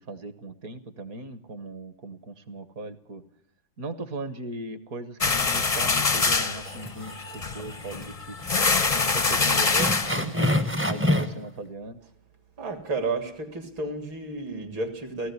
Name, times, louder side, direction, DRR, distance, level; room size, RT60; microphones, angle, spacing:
voice 1, 0.0-3.2 3.8-8.4 8.9-10.5 10.9-12.0, right 2 dB, 50° right, 12 dB, 1.4 m, -38 dB
sound 1, 5.2-10.7, left 4 dB, 50° left, 0.4 m, -25 dB
sound 2, 6.7-7.3 7.7-7.8 8.4-8.5 8.9-9.0 9.8-11.5, left 1 dB, 15° right, 0.5 m, -26 dB
voice 2, 12.6-15.3, right 3 dB, 70° right, 7 dB, 3.5 m, -31 dB
18.0 x 15.5 x 9.6 m, 0.65 s
omnidirectional pair, 2.2 m